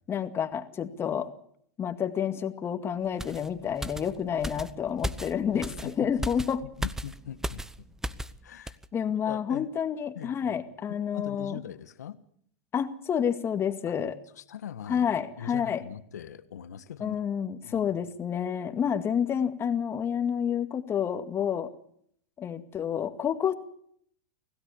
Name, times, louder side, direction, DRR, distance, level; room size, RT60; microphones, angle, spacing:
voice 1, 0.1-1.3 1.8-6.6 8.9-11.6 12.7-14.2 14.9-15.8 17.0-21.7 22.4-23.5, left 8 dB, 30° left, 9 dB, 2.1 m, -29 dB
sound 1, 3.2-8.4 8.7-8.9, right 1 dB, 5° right, 0.9 m, -36 dB
voice 2, 5.5-6.1 6.4-6.5 6.8-7.9 8.4-8.8 9.2-9.7 10.1-10.6 10.9-12.2 13.9-14.0 14.4-17.2 17.6-17.9, left 9 dB, 85° left, 12 dB, 1.5 m, -42 dB
25.5 x 16.5 x 7.1 m, 0.67 s
hypercardioid pair, 105°, 9 cm